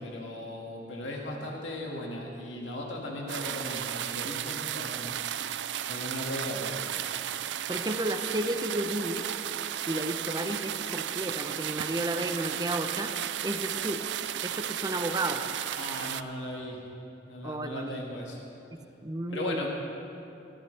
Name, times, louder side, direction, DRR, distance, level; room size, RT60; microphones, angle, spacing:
voice 1, 0.0-5.2 5.9-6.8 15.8-16.8 17.3-18.4 19.3-19.7, left 1 dB, 90° left, -1 dB, 1.9 m, -37 dB
sound 1, 3.3-16.2, right 10 dB, 70° right, 0.4 m, -34 dB
voice 2, 7.7-9.3 9.9-13.1 13.4-15.4 17.4-17.9 19.0-19.7, right 1 dB, 20° right, 6 dB, 0.7 m, -32 dB
20.0 x 13.5 x 3.4 m, 2.8 s
head